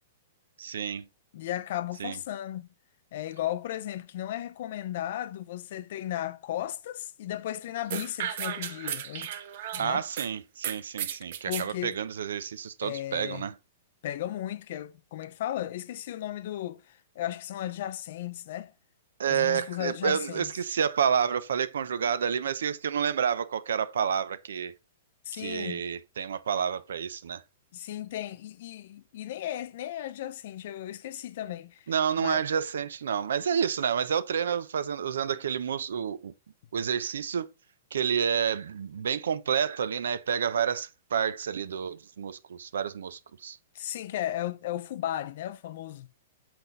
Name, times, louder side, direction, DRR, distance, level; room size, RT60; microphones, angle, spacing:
voice 1, 0.6-1.0 2.0-2.1 9.8-13.5 19.2-24.7 25.3-27.4 31.9-36.3 36.7-37.5 37.9-43.6, right 7 dB, 85° right, 0.7 m, -29 dB
voice 2, 1.3-2.7 3.1-9.3 9.7-10.0 11.5-12.0 12.8-13.5 14.0-18.7 19.3-20.5 25.3-25.9 27.7-31.9 32.2-32.4 43.7-46.1, left 12 dB, 50° left, 0.5 m, -35 dB
sound 1, 7.9-10.3 10.6-11.7, right 10 dB, 50° right, 0.8 m, -34 dB
7.7 x 4.4 x 3.9 m
hypercardioid pair, 165°, 0 cm